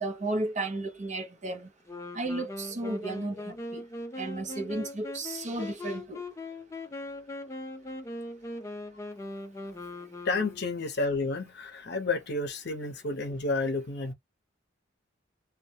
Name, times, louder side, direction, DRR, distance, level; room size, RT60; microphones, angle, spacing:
voice 1, 0.0-1.7 2.1-3.8 4.2-6.2, right 2 dB, 35° right, 0.7 m, -33 dB
Wind instrument woodwind instrument, 1.9-10.9, left 2 dB, 15° left, 0.4 m, -40 dB
voice 2, 10.2-14.1, left 3 dB, 60° left, 0.7 m, -30 dB
2.2 x 2.1 x 2.7 m
head